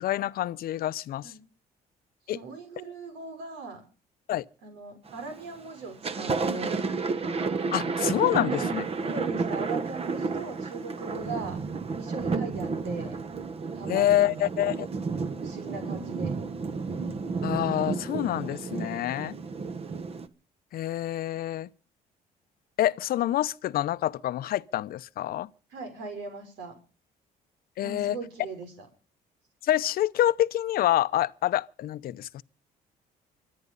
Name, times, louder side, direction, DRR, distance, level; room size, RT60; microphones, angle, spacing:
voice 1, 0.0-1.3 2.3-2.4 4.3-4.4 7.7-8.8 13.9-14.9 17.4-19.4 20.7-21.7 22.8-25.5 27.8-28.2 29.6-32.4, left 13 dB, 60° left, 0.7 m, -27 dB
voice 2, 2.3-3.8 4.6-6.9 8.3-11.6 12.0-13.2 13.7-14.5 15.4-16.3 25.7-26.8 27.8-28.9, right 4 dB, 90° right, 5.8 m, -39 dB
Thunder, 5.1-5.5 5.8-20.3, right 4 dB, 35° right, 1.3 m, -31 dB
25.0 x 9.6 x 5.4 m
cardioid pair, 110°, 17 cm